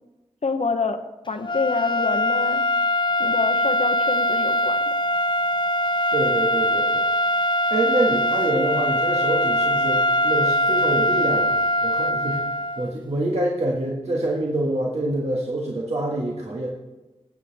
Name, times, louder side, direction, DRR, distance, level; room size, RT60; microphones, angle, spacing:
voice 1, 0.4-2.6 3.2-5.0, left 4 dB, 70° left, 8 dB, 1.0 m, -27 dB
sound 1, 1.4-12.9, left 1 dB, 40° left, 0.5 m, -22 dB
voice 2, 6.1-7.1 7.7-12.4 12.8-16.7, right 1 dB, 65° right, -3 dB, 1.6 m, -26 dB
18.5 x 7.6 x 3.5 m, 1.1 s
wide cardioid pair, 55°, 12 cm